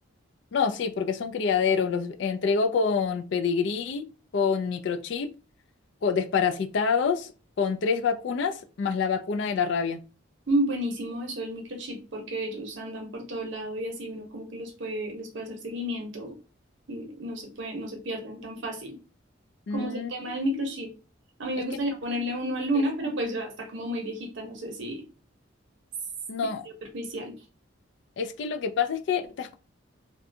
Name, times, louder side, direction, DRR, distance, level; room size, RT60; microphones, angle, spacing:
voice 1, 0.5-4.1 4.3-5.3 6.0-7.3 7.6-10.0 19.7-20.1 20.5-20.6 21.6-21.7 22.7-22.8 26.3-26.6 28.2-29.6, left 5 dB, 60° left, 0.3 m, -26 dB
voice 2, 10.5-16.3 16.9-18.9 19.7-20.9 21.4-25.0 26.9-27.3, right 1 dB, 65° right, 0.7 m, -31 dB
2.6 x 2.2 x 2.6 m
head